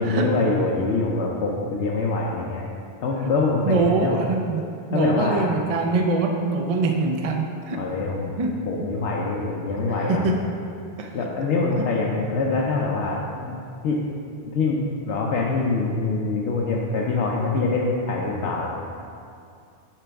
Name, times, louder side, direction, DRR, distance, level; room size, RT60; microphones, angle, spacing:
voice 1, 0.0-2.7 3.0-4.1 4.9-5.5 7.7-8.3 8.7-10.2 11.1-13.6 13.8-14.0 14.4-18.7, left 3 dB, 75° left, -3 dB, 0.9 m, -24 dB
voice 2, 3.6-7.8 8.4-8.5 8.8-8.9 10.0-10.4 11.0-11.1, right 3 dB, 40° right, 2 dB, 0.6 m, -23 dB
8.9 x 5.0 x 3.4 m, 2.4 s
omnidirectional pair, 1.2 m